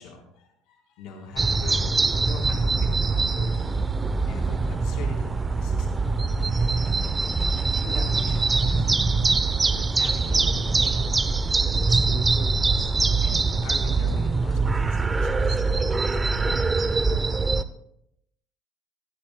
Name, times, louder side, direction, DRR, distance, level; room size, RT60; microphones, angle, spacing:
voice 1, 0.0-1.9 2.2-3.6 4.3-6.1 7.8-8.9 9.8-11.2 11.9-15.8 16.1-16.4, left 5 dB, 65° left, 1 dB, 3.8 m, -42 dB
sound 1, 1.4-17.6, right 4 dB, 20° right, 0.7 m, -23 dB
25.0 x 10.0 x 2.2 m, 0.76 s
supercardioid pair, 85°, 0 cm